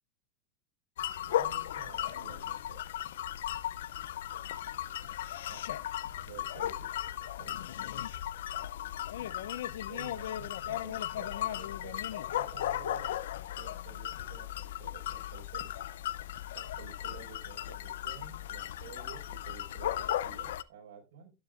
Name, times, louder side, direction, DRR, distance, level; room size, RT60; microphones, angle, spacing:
sound 1, 1.0-20.6, left 12 dB, 90° left, 0.5 m, -36 dB
voice 1, 1.2-2.8 5.5-5.6 6.1-7.6 9.9-13.1 13.6-15.7 16.5-21.3, right 6 dB, 90° right, 1 dB, 4.6 m, -51 dB
12.0 x 9.7 x 2.4 m, 0.26 s
supercardioid pair, 170°, 0 cm